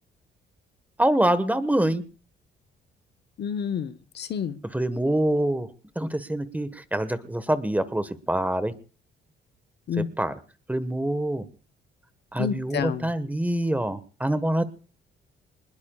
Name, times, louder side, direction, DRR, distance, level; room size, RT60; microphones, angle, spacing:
voice 1, 1.0-2.0 4.7-5.7 5.9-8.7 10.2-10.3 10.7-11.5 12.3-14.6, right 1 dB, 10° right, 12 dB, 1.3 m, -25 dB
voice 2, 3.4-4.6 9.9-10.1 12.4-13.1, left 7 dB, 60° left, 12 dB, 1.0 m, -29 dB
24.5 x 20.5 x 2.3 m, 0.36 s
cardioid pair, 90°, 20 cm